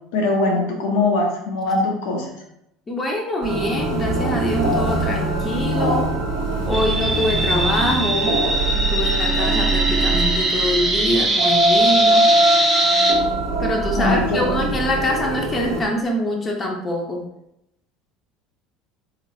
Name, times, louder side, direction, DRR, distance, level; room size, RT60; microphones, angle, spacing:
voice 1, 0.1-2.4 14.0-14.6, left 2 dB, 60° left, 1 dB, 0.6 m, -21 dB
voice 2, 2.9-6.1 6.7-8.4 8.7-12.3 13.6-17.2, left 1 dB, 25° left, 0 dB, 0.7 m, -24 dB
sound 1, 3.4-15.8, right 2 dB, 60° right, 0.9 m, -22 dB
sound 2, 6.7-13.1, right 1 dB, 15° right, 0.9 m, -22 dB
3.8 x 3.0 x 2.7 m, 0.81 s
figure-of-eight pair, 65°, 0 cm